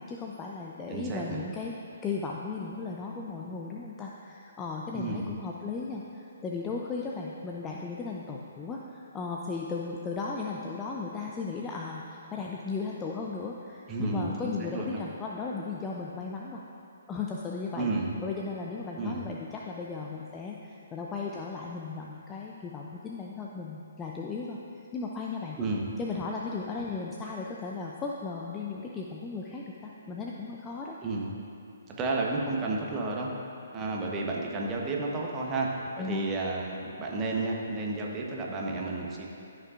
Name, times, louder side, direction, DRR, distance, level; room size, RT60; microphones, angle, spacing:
voice 1, 0.0-1.7 2.0-16.8 17.1-17.9 18.2-24.6 24.9-25.6 26.0-31.0 36.0-36.3, left 4 dB, 15° left, -2 dB, 0.5 m, -36 dB
voice 2, 0.9-1.4 4.9-5.3 13.9-15.0 17.7-18.1 19.0-19.2 25.6-25.9 31.0-31.3 31.9-33.3 33.7-35.7 36.0-39.2, right 3 dB, 20° right, -2 dB, 1.0 m, -31 dB
13.0 x 5.5 x 2.5 m, 2.7 s
figure-of-eight pair, 135°, 0 cm